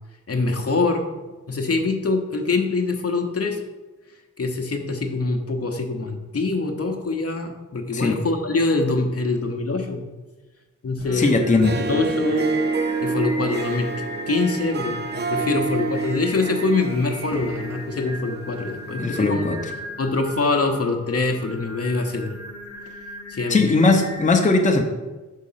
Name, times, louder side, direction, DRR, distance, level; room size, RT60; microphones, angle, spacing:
voice 1, 0.3-1.1 1.5-3.6 4.4-10.0 10.8-11.4 11.7-12.5 13.0-13.9 14.3-19.5 20.0-22.4 23.3-23.7, left 3 dB, 50° left, 3 dB, 0.8 m, -24 dB
Singing, 11.0-24.3, equal, 50° right, 1.4 m, -38 dB
voice 2, 11.1-11.7 19.0-19.7 23.5-24.8, left 3 dB, 25° left, 2 dB, 0.7 m, -19 dB
Harp, 11.5-18.9, right 3 dB, 35° right, 0.4 m, -28 dB
6.3 x 3.7 x 5.6 m, 1.2 s
wide cardioid pair, 85°, 30 cm